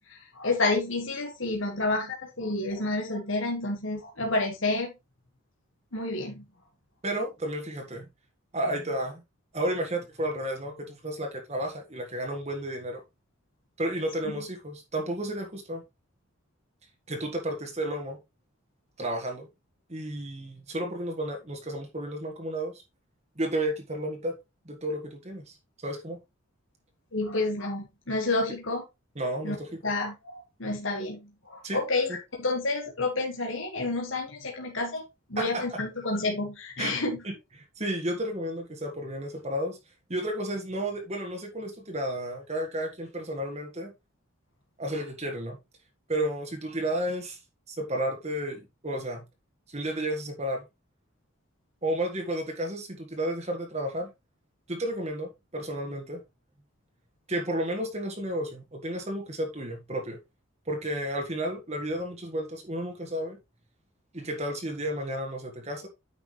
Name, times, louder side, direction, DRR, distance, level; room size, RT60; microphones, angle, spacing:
voice 1, 0.1-4.9 5.9-6.4 27.1-28.8 29.4-29.6 29.8-35.0 35.3-37.2, left 2 dB, 65° left, 1.8 m, -29 dB
voice 2, 7.0-8.0 8.5-9.2 9.5-13.0 13.8-15.8 17.1-18.2 19.0-19.5 19.9-22.8 23.4-24.4 24.6-26.2 29.1-29.8 31.6-31.8 35.4-35.8 36.8-36.9 37.2-39.8 40.1-43.9 44.8-45.6 46.1-47.4 47.7-49.2 49.7-50.6 51.8-54.1 54.7-56.2 57.3-60.2 60.7-63.4 64.1-65.9, right 1 dB, 30° right, 1.5 m, -32 dB
9.5 x 5.9 x 3.2 m
head